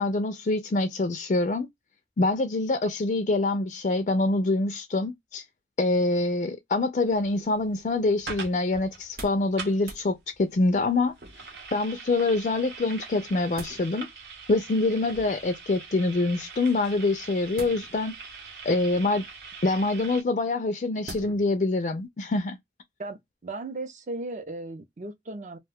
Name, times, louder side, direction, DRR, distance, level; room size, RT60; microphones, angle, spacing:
voice 1, 0.0-1.7 2.2-5.4 5.8-11.5 11.7-14.1 14.5-18.1 18.6-19.3 19.6-22.6, left 2 dB, 45° left, 0.4 m, -25 dB
sound 1, 7.1-20.2, right 4 dB, 85° right, 1.0 m, -43 dB
sound 2, 9.0-9.5 9.8-10.1 11.2-11.6 13.1-13.8 15.0-15.5 17.5-18.2 18.9-19.4 21.0-21.5 22.0-22.1, right 2 dB, 60° right, 0.9 m, -44 dB
voice 2, 23.0-25.6, right 2 dB, 45° right, 0.5 m, -36 dB
2.5 x 2.2 x 3.4 m
head